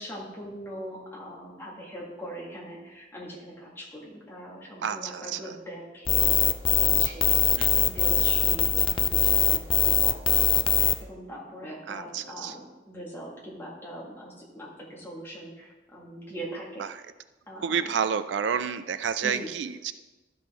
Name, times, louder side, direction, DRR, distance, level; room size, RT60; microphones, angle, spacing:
voice 1, 0.0-6.5 6.8-7.4 7.8-16.8 17.5-17.8 19.2-19.5, equal, 15° left, -5 dB, 1.9 m, -41 dB
voice 2, 4.8-5.6 7.6-7.7 11.9-12.6 16.8-17.0 17.6-19.9, right 7 dB, 80° right, 12 dB, 0.4 m, -30 dB
sound 1, 6.1-10.9, left 9 dB, 30° left, 0.3 m, -22 dB
12.5 x 6.0 x 3.6 m, 1.1 s
head